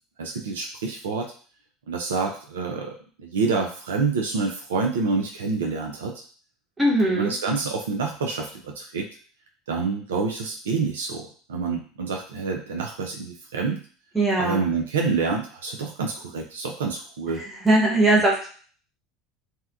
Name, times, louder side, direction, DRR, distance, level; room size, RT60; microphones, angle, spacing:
voice 1, 0.2-1.3 1.9-6.2 7.1-9.1 9.7-13.8 14.4-17.4, right 4 dB, 80° right, 1 dB, 0.4 m, -27 dB
voice 2, 6.8-7.3 14.1-14.7 17.5-18.5, right 1 dB, 15° right, -3 dB, 1.0 m, -20 dB
2.8 x 2.1 x 2.3 m, 0.42 s
hypercardioid pair, 75°, 0 cm